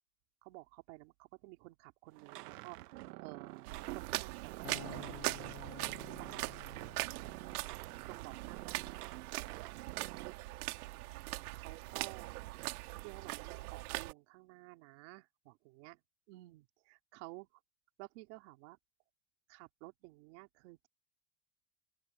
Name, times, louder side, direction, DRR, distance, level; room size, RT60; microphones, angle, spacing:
voice 1, 0.4-5.4 6.2-7.2 7.8-8.9 9.4-9.6 9.8-10.3 11.5-12.3 13.0-16.0 16.3-17.5 18.0-18.8 19.5-20.9, right 22 dB, 50° right, 2.5 m, -53 dB
sound 1, 2.1-10.3, right 18 dB, 85° right, 1.1 m, -49 dB
sound 2, 3.7-14.1, right 20 dB, 70° right, 1.8 m, -41 dB
Acoustic guitar, 4.6-7.9, left 29 dB, 50° left, 5.7 m, -52 dB
open air
supercardioid pair, 175°, 46 cm